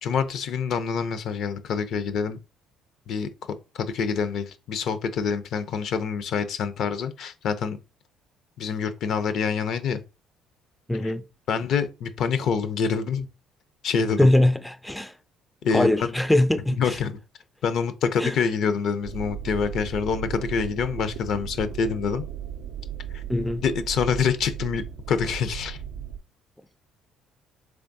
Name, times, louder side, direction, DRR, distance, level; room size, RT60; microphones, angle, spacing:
voice 1, 0.0-2.4 3.1-3.3 3.7-7.8 8.6-10.0 11.0-11.1 11.5-13.3 13.8-14.3 15.6-15.9 16.7-17.1 17.6-22.2 23.1-23.2 23.6-25.8, left 6 dB, 65° left, 0.4 m, -26 dB
voice 2, 10.9-11.2 14.2-15.1 15.7-17.0 18.2-18.3 23.3-23.6, left 1 dB, 5° left, 0.3 m, -22 dB
sound 1, 19.0-26.2, right 9 dB, 80° right, 0.4 m, -36 dB
3.4 x 3.3 x 2.6 m
supercardioid pair, 80°, 0 cm